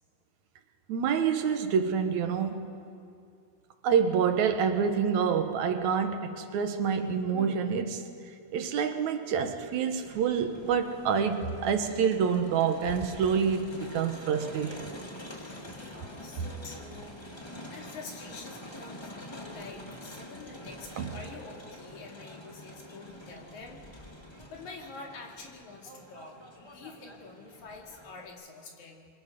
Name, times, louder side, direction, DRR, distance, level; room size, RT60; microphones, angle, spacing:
voice 1, 0.9-2.8 3.8-8.1 8.5-14.9 21.0-21.1, right 6 dB, 70° right, 2.4 m, -27 dB
Crowd, 10.0-28.3, left 1 dB, 30° left, 0.5 m, -46 dB
voice 2, 15.3-17.2 17.5-23.8 24.5-29.1, left 4 dB, 70° left, 3.7 m, -47 dB
28.0 x 23.5 x 5.2 m
omnidirectional pair, 3.5 m